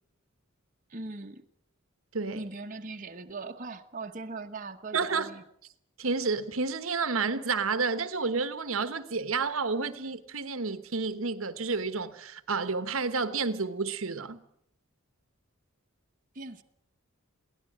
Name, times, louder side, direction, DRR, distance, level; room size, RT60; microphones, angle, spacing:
voice 1, 0.9-1.4 2.3-5.4 16.3-16.6, right 3 dB, 40° right, 1.1 m, -40 dB
voice 2, 2.1-2.4 4.9-5.3 6.0-14.4, right 4 dB, 70° right, 1.2 m, -30 dB
22.0 x 17.0 x 8.7 m
head